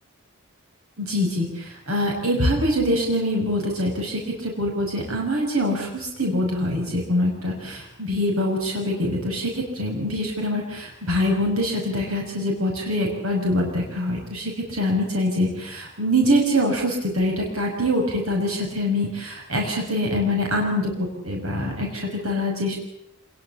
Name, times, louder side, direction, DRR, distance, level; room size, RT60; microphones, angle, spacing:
voice 1, 1.0-22.8, left 1 dB, 75° right, 1 dB, 6.2 m, -24 dB
26.5 x 22.0 x 7.3 m, 0.80 s
head